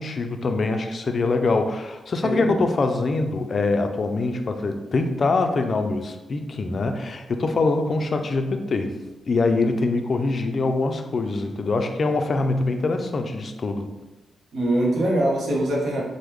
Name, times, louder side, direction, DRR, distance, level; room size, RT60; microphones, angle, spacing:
voice 1, 0.0-8.9 9.3-13.9, left 3 dB, 50° left, 6 dB, 0.3 m, -24 dB
voice 2, 2.2-2.6 14.5-16.0, right 1 dB, 80° right, -3 dB, 0.7 m, -23 dB
3.4 x 2.0 x 3.0 m, 1.1 s
cardioid pair, 100°, 0 cm